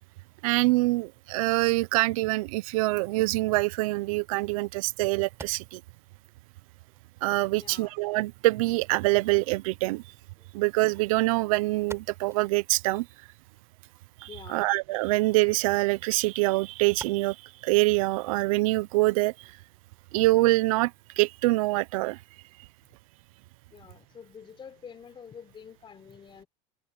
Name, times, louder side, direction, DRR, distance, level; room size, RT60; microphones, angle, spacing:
voice 1, 0.4-5.8 7.2-10.0 10.5-13.1 14.5-17.4 17.6-19.5 20.1-22.2, right 22 dB, 75° right, 0.7 m, -25 dB
sound 1, 4.9-22.5, right 3 dB, 15° right, 6.2 m, -55 dB
voice 2, 7.6-7.9 14.3-14.7 23.7-26.5, left 7 dB, 25° left, 3.9 m, -47 dB
supercardioid pair, 115°, 18 cm